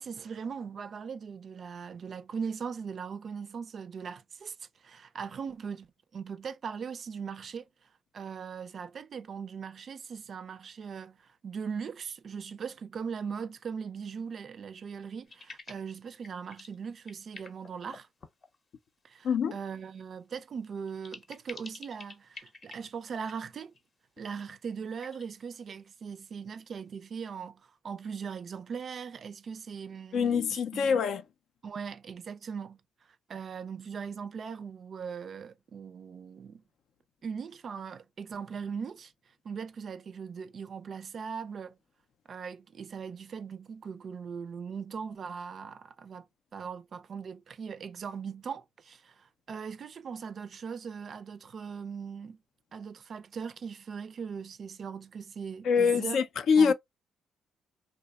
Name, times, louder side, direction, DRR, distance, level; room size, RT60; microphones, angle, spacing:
voice 1, 0.0-18.1 19.0-23.7 24.2-30.9 31.6-36.6 37.2-39.1 39.4-41.8 42.3-46.3 46.5-52.4 52.7-56.2 56.6-56.7, right 6 dB, 50° right, 0.3 m, -40 dB
sound 1, 15.3-16.0 16.2-16.8 17.0-18.5 20.9-22.8 23.2-23.8 25.0-25.3, left 3 dB, 40° left, 0.7 m, -48 dB
voice 2, 30.1-31.2 55.7-56.7, left 6 dB, 70° left, 0.4 m, -24 dB
2.9 x 2.0 x 2.2 m
cardioid pair, 90°, 0 cm